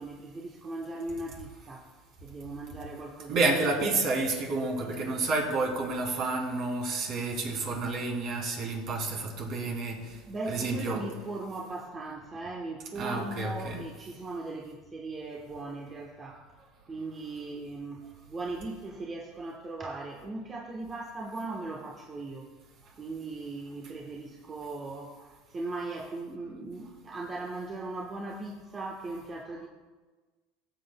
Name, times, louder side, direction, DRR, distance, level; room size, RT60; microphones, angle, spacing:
voice 1, 0.0-1.9 2.2-3.4 3.9-4.0 9.9-22.5 22.8-29.7, right 2 dB, 30° right, -1 dB, 1.1 m, -39 dB
voice 2, 3.3-10.2 10.5-11.0 12.9-13.8, right 3 dB, 55° right, -1 dB, 3.0 m, -30 dB
17.0 x 7.9 x 2.2 m, 1.3 s
supercardioid pair, 100°, 0 cm